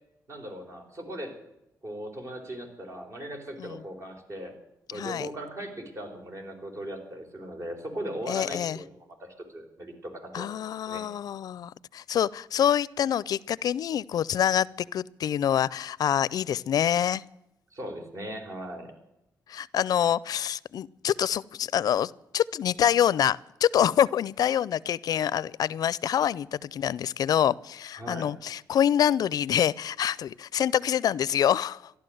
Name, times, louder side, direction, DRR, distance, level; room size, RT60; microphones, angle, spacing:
voice 1, 0.3-1.3 1.8-4.5 4.9-8.9 9.2-10.5 10.9-11.0 17.7-18.9 28.0-28.3, equal, 45° right, 4 dB, 4.3 m, -38 dB
voice 2, 4.9-5.3 8.3-8.8 10.3-17.2 19.5-31.9, left 10 dB, 70° left, 22 dB, 0.4 m, -26 dB
14.0 x 11.5 x 7.8 m, 0.87 s
cardioid pair, 105°, 7 cm